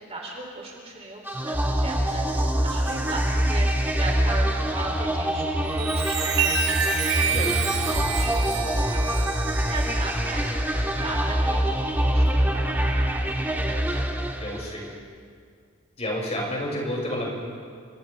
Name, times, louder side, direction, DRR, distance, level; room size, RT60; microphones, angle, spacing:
voice 1, 0.0-7.2 7.9-8.5 8.9-13.2 13.4-14.5, right 2 dB, 30° right, -1 dB, 3.4 m, -37 dB
sound 1, 1.3-14.9, equal, 10° right, 1.5 m, -25 dB
Chime, 5.5-11.5 12.1-12.4, right 7 dB, 65° right, 3.9 m, -29 dB
voice 2, 7.2-7.7 14.4-14.8 16.0-17.3, left 1 dB, 35° left, -3 dB, 6.3 m, -30 dB
29.5 x 25.0 x 3.5 m, 2.1 s
head